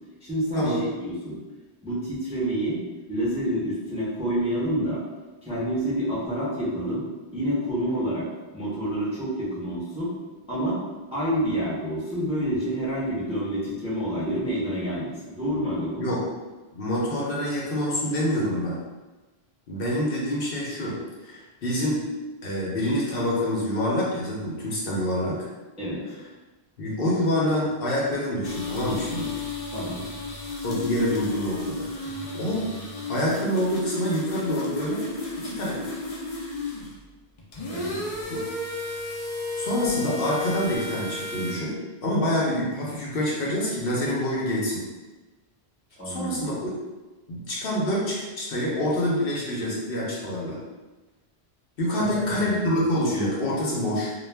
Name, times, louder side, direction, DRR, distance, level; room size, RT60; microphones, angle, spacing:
voice 1, 0.2-1.4 1.8-2.8 3.1-5.0 5.4-7.0 7.3-8.3 8.5-10.1 10.5-10.8 11.1-16.1 25.8-26.0 29.7-30.0 37.7-38.0 46.0-46.5 52.0-52.6, equal, 5° right, -9 dB, 0.6 m, -28 dB
voice 2, 16.7-18.8 19.7-22.0 22.4-25.5 26.8-29.3 30.6-32.7 33.1-35.0 35.4-35.8 38.3-38.4 39.6-41.8 42.0-44.8 46.0-46.7 47.3-50.6 51.8-54.1, equal, 65° left, -5 dB, 0.9 m, -26 dB
sound 1, 28.4-37.0 37.4-41.5, left 2 dB, 50° left, 0.5 m, -33 dB
2.2 x 2.2 x 3.3 m, 1.2 s
omnidirectional pair, 1.0 m